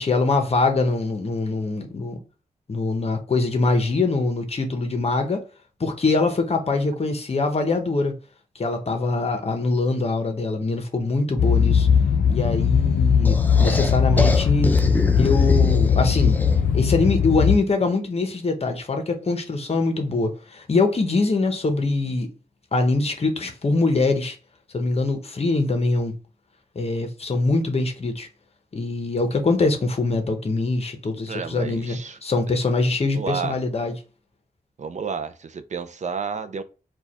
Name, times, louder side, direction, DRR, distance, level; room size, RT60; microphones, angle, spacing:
voice 1, 0.0-2.2 2.7-5.4 5.8-8.2 8.6-11.9 12.3-14.7 15.1-16.4 16.7-22.3 22.7-24.4 24.7-26.1 26.8-28.3 28.7-33.9, left 3 dB, 40° left, 0.8 m, -23 dB
sound 1, 11.4-17.6, left 7 dB, 70° left, 0.4 m, -19 dB
sound 2, 13.2-16.8, left 1 dB, 10° left, 0.4 m, -25 dB
voice 2, 31.3-32.2 32.5-32.6 33.1-33.6 34.8-36.6, right 5 dB, 50° right, 0.4 m, -31 dB
4.6 x 2.3 x 4.1 m
wide cardioid pair, 145°, 15 cm